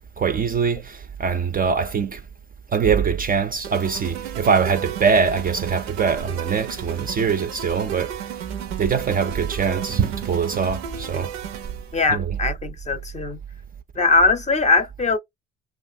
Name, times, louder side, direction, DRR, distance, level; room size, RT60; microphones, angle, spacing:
voice 1, 0.2-2.2 2.7-8.2 8.8-11.3 12.1-12.4, right 6 dB, 30° right, 0.4 m, -22 dB
sound 1, 3.6-12.0, right 9 dB, 85° right, 0.5 m, -34 dB
voice 2, 11.9-13.4 14.0-15.2, left 3 dB, 20° left, 0.5 m, -20 dB
2.8 x 2.0 x 2.5 m
hypercardioid pair, 55°, 31 cm